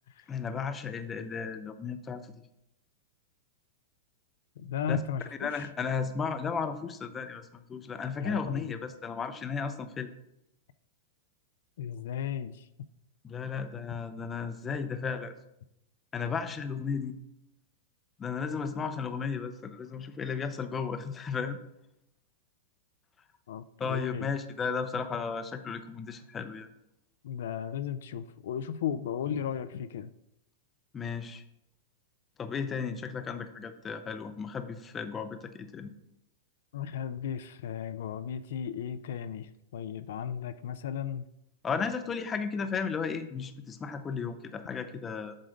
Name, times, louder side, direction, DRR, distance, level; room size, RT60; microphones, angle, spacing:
voice 1, 0.3-2.4 4.9-5.0 5.4-10.1 13.2-15.3 16.1-17.1 18.2-21.6 23.8-26.7 30.9-31.4 32.4-35.9 41.6-45.4, left 5 dB, 15° left, 9 dB, 0.5 m, -34 dB
voice 2, 4.6-5.7 8.2-8.7 11.8-12.7 23.5-24.3 27.2-30.1 36.7-41.2, left 8 dB, 70° left, 12 dB, 0.4 m, -35 dB
7.6 x 3.8 x 5.1 m, 0.83 s
supercardioid pair, 150°, 0 cm